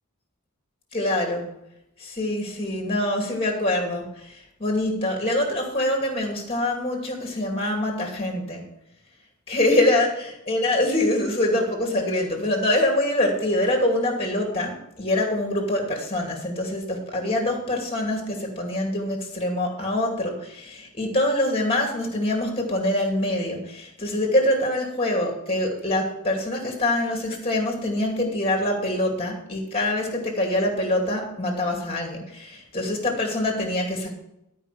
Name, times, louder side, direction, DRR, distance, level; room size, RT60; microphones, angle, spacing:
voice 1, 0.9-1.5 2.0-8.6 9.5-34.1, left 1 dB, 25° left, 1 dB, 2.6 m, -25 dB
12.5 x 5.3 x 6.9 m, 0.83 s
head